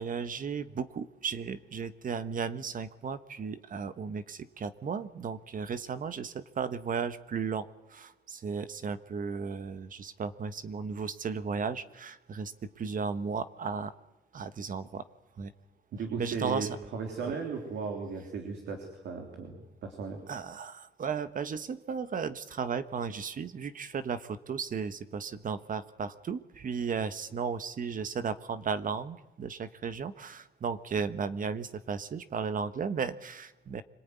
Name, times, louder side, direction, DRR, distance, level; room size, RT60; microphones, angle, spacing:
voice 1, 0.0-13.9 14.3-15.0 15.4-15.5 16.2-16.8 17.3-17.4 20.3-33.8, right 6 dB, 50° right, 13 dB, 1.3 m, -35 dB
voice 2, 16.0-20.2, right 5 dB, 80° right, 3 dB, 3.6 m, -36 dB
26.0 x 18.5 x 9.6 m, 0.95 s
cardioid pair, 90°, 18 cm